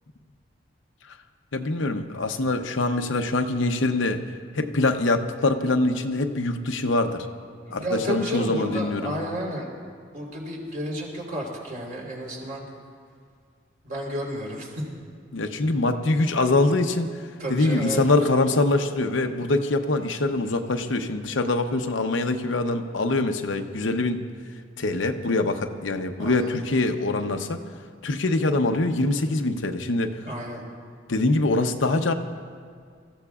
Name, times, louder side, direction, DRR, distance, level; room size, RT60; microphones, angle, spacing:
voice 1, 1.5-4.2 4.5-7.3 7.7-9.1 15.3-17.1 17.5-24.2 24.8-27.6 28.0-30.2 31.1-32.1, left 2 dB, 85° left, 6 dB, 0.8 m, -24 dB
voice 2, 7.7-9.7 10.1-12.6 13.8-14.9 17.4-18.0 26.2-26.5 30.2-30.6, equal, 45° right, -2 dB, 3.7 m, -31 dB
26.5 x 14.5 x 2.4 m, 2.1 s
head